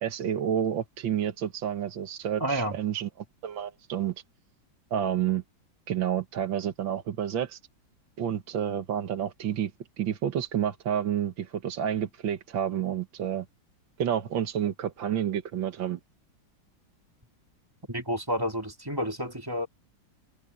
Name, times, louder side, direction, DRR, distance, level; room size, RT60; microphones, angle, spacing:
voice 1, 0.0-3.1 3.4-4.1 4.9-5.4 5.9-7.6 8.2-9.7 10.0-13.5 14.0-16.0, right 9 dB, 75° right, 2.1 m, -29 dB
voice 2, 2.4-2.8 17.9-19.7, equal, 10° right, 2.7 m, -30 dB
omnidirectional pair, 2.1 m